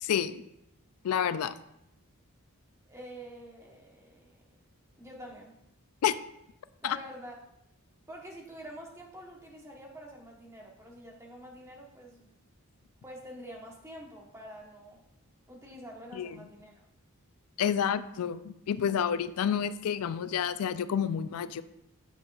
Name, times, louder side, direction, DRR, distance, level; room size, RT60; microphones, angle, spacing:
voice 1, 0.0-0.4 1.0-1.5 6.0-6.2 6.8-7.0 16.2-16.3 17.6-21.6, left 8 dB, 80° left, 14 dB, 0.4 m, -29 dB
voice 2, 2.8-4.4 4.9-5.6 6.8-7.4 8.1-12.3 13.0-15.0 15.5-16.8, equal, 15° right, -1 dB, 1.1 m, -47 dB
8.9 x 5.4 x 2.4 m, 0.82 s
head